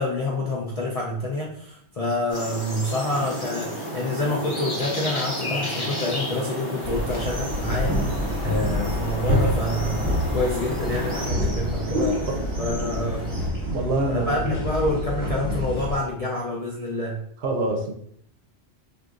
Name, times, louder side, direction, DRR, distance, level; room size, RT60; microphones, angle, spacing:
voice 1, 0.0-8.1 8.4-12.3 12.6-13.3 14.1-17.2, left 1 dB, 55° left, -3 dB, 0.4 m, -27 dB
sound 1, 2.3-11.3, left 1 dB, 25° left, 0.8 m, -34 dB
sound 2, 3.0-13.5, right 2 dB, 35° right, 0.8 m, -36 dB
sound 3, 6.8-15.9, equal, 20° right, 1.0 m, -27 dB
voice 2, 13.6-14.4 17.4-17.9, right 2 dB, 70° right, 3 dB, 0.8 m, -25 dB
3.7 x 2.5 x 2.4 m, 0.66 s
omnidirectional pair, 1.2 m